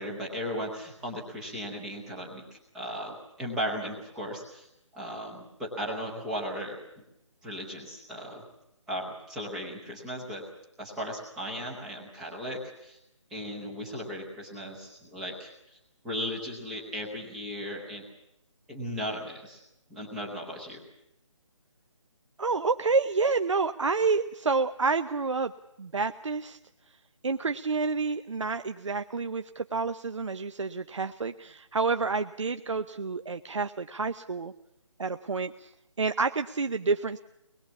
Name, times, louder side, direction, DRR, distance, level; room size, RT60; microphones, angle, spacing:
voice 1, 0.0-4.7 4.9-6.8 7.4-8.4 8.9-10.5 10.8-13.0 13.3-15.8 16.0-18.0 18.7-19.6 19.9-20.8, equal, ahead, -3 dB, 0.8 m, -36 dB
voice 2, 22.4-25.5 25.8-26.6 27.2-34.5 35.0-35.7 36.0-37.2, right 4 dB, 65° right, 8 dB, 0.8 m, -29 dB
23.5 x 20.5 x 7.1 m, 0.85 s
hypercardioid pair, 180°, 17 cm